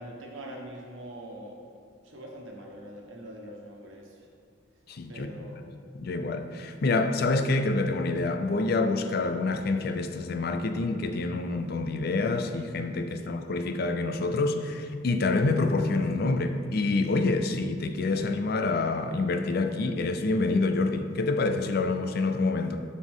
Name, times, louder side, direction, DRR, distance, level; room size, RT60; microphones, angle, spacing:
voice 1, 0.0-1.6 2.0-4.2 5.1-5.6 13.2-13.3, right 1 dB, 85° right, 0 dB, 1.3 m, -43 dB
voice 2, 4.9-5.3 5.9-22.8, left 3 dB, 55° left, 8 dB, 0.5 m, -27 dB
12.0 x 4.1 x 3.7 m, 2.3 s
head